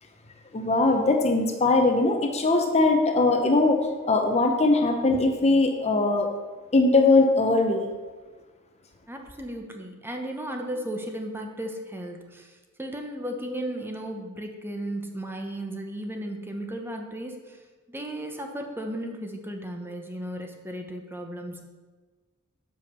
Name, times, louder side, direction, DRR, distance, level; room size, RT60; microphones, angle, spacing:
voice 1, 0.5-3.8 4.1-6.3 6.7-7.9, left 2 dB, 30° left, 4 dB, 0.8 m, -21 dB
voice 2, 9.1-17.6 17.9-21.6, right 1 dB, 10° right, 3 dB, 0.9 m, -35 dB
8.1 x 5.2 x 6.6 m, 1.4 s
head